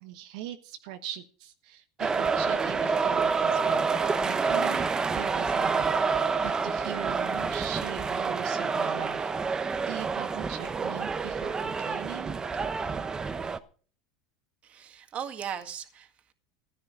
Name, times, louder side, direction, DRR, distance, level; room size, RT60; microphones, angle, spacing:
voice 1, 0.0-4.9 5.1-12.4, right 12 dB, 70° right, 1.2 m, -41 dB
sound 1, 2.0-13.6, right 5 dB, 20° right, 0.9 m, -28 dB
voice 2, 14.6-16.3, right 8 dB, 35° right, 1.9 m, -38 dB
15.0 x 10.5 x 5.0 m
supercardioid pair, 130°, 4 cm